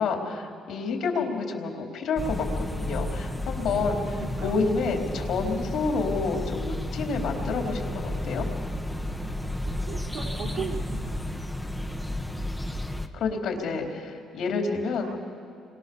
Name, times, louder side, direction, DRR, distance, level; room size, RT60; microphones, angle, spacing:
voice 1, 0.0-8.5 13.1-15.1, left 4 dB, 65° left, 2 dB, 3.9 m, -29 dB
sound 1, 2.2-13.1, left 1 dB, ahead, 1.2 m, -32 dB
voice 2, 4.1-4.5 9.9-10.9 15.0-15.1, right 5 dB, 65° right, -1 dB, 4.4 m, -36 dB
29.5 x 23.5 x 7.1 m, 2.5 s
cardioid pair, 130°, 0 cm